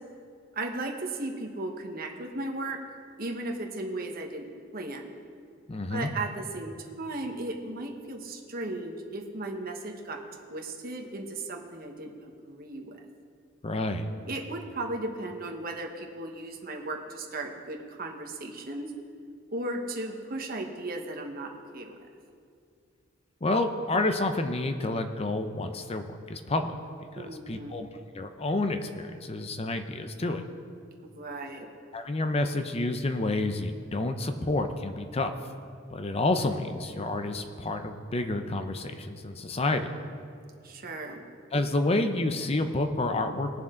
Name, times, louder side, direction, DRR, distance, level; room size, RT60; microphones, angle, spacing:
voice 1, 0.5-2.8 3.2-4.5 4.7-5.1 5.9-10.2 10.5-13.0 14.2-18.9 19.5-22.0 27.2-27.8 31.0-31.7 40.6-41.2, right 2 dB, 50° right, 2 dB, 1.2 m, -36 dB
voice 2, 5.7-6.1 13.6-14.1 23.4-26.8 27.1-27.9 28.1-30.4 31.9-35.3 35.9-39.9 41.5-43.5, left 2 dB, 30° left, 7 dB, 0.6 m, -29 dB
20.0 x 7.2 x 3.8 m, 2.3 s
head